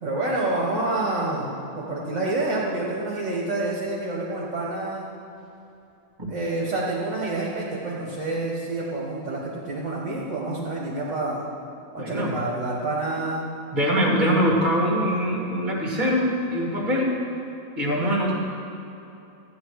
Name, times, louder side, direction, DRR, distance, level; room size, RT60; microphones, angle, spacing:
voice 1, 0.0-5.1 6.3-11.5 11.9-13.5, right 2 dB, 60° right, -5 dB, 1.8 m, -28 dB
voice 2, 12.0-12.4 13.7-17.1 17.8-18.3, equal, 35° right, -2 dB, 2.2 m, -23 dB
14.0 x 9.3 x 4.7 m, 2.9 s
omnidirectional pair, 1.5 m